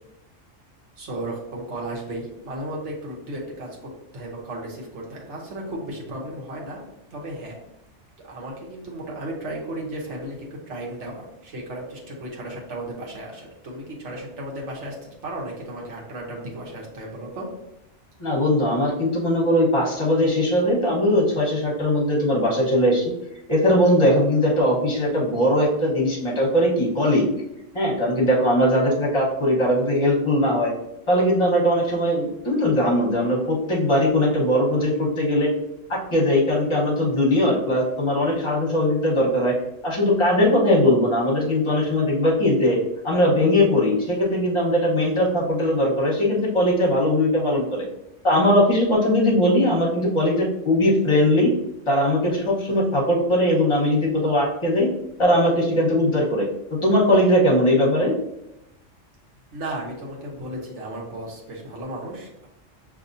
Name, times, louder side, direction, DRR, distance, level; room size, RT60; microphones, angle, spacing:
voice 1, 1.0-6.8 7.1-7.6 8.2-17.5 59.5-62.5, right 1 dB, 70° right, -2 dB, 1.3 m, -34 dB
voice 2, 18.2-23.1 23.5-27.2 27.7-30.7 31.1-35.5 35.9-39.5 39.8-42.8 43.0-47.8 48.2-51.5 51.9-54.9 55.2-56.4 56.7-58.1, left 1 dB, 25° left, -4 dB, 1.2 m, -20 dB
5.9 x 2.8 x 2.6 m, 0.86 s
omnidirectional pair, 1.3 m